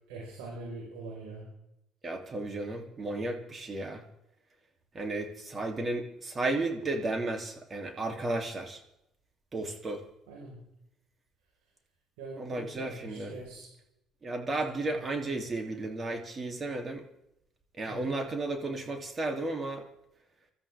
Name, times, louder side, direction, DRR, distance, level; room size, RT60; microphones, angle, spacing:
voice 1, 0.1-1.4 10.3-10.6 12.2-13.7 14.6-15.0 17.9-18.1, right 2 dB, 90° right, -2 dB, 4.8 m, -43 dB
voice 2, 2.0-4.0 4.9-8.8 9.5-10.0 12.4-13.3 14.2-17.0 17.8-19.8, right 2 dB, 35° right, 3 dB, 3.1 m, -33 dB
25.0 x 13.5 x 3.6 m, 0.82 s
supercardioid pair, 75°, 0 cm